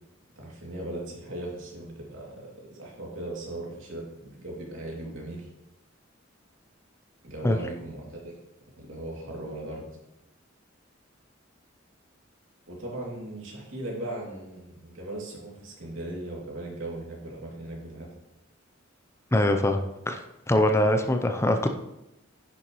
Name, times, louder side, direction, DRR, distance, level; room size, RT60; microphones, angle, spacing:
voice 1, 0.4-5.5 7.2-8.2 8.8-9.9 12.7-18.1, right 1 dB, 85° right, -3 dB, 2.7 m, -38 dB
voice 2, 19.3-19.8 20.1-20.2 20.5-21.7, left 1 dB, 15° left, 5 dB, 0.5 m, -22 dB
10.0 x 6.9 x 3.1 m, 0.89 s
head